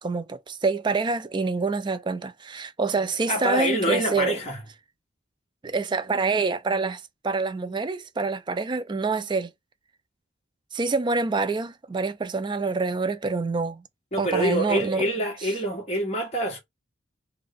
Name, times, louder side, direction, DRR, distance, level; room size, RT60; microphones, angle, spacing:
voice 1, 0.0-4.4 5.6-9.5 10.7-13.8 14.2-15.1, right 4 dB, 25° right, 0.3 m, -26 dB
voice 2, 3.3-4.6 14.1-16.6, equal, 35° left, 1.3 m, -26 dB
3.4 x 2.1 x 3.6 m
head